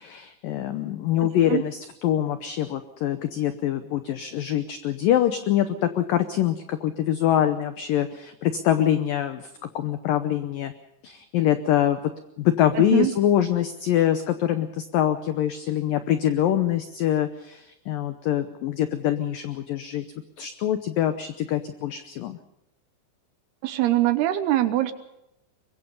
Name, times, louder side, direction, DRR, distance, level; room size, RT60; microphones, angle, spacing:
voice 1, 0.0-10.7 11.0-12.0 12.4-20.0 20.4-22.4, left 11 dB, 85° left, 10 dB, 1.9 m, -24 dB
voice 2, 1.2-1.6 12.8-13.1 23.6-24.9, right 14 dB, 75° right, 11 dB, 2.6 m, -23 dB
23.5 x 21.5 x 5.4 m, 0.87 s
omnidirectional pair, 5.3 m